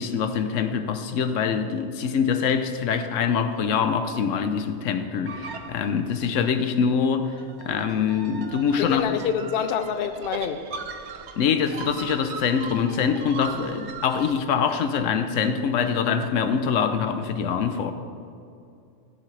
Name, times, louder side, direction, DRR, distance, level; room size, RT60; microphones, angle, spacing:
voice 1, 0.0-7.4 7.6-9.2 11.4-17.9, left 6 dB, 75° left, 1.0 m, -24 dB
sound 1, 5.3-6.2 7.3-14.4, right 5 dB, 65° right, 0.9 m, -39 dB
voice 2, 8.8-10.6, left 8 dB, 60° left, 0.6 m, -26 dB
15.0 x 7.5 x 3.2 m
omnidirectional pair, 1.3 m